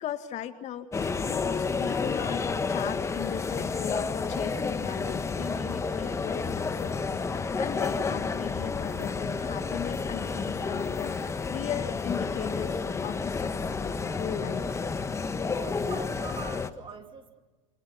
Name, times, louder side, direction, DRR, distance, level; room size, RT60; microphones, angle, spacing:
voice 1, 0.0-12.8 13.0-14.7, left 10 dB, 40° left, 9 dB, 2.0 m, -38 dB
sound 1, 0.9-16.7, left 4 dB, 15° left, 1.5 m, -30 dB
voice 2, 15.5-17.4, right 6 dB, 30° right, 5 dB, 3.0 m, -43 dB
29.0 x 29.0 x 6.0 m, 1.3 s
hypercardioid pair, 105°, 18 cm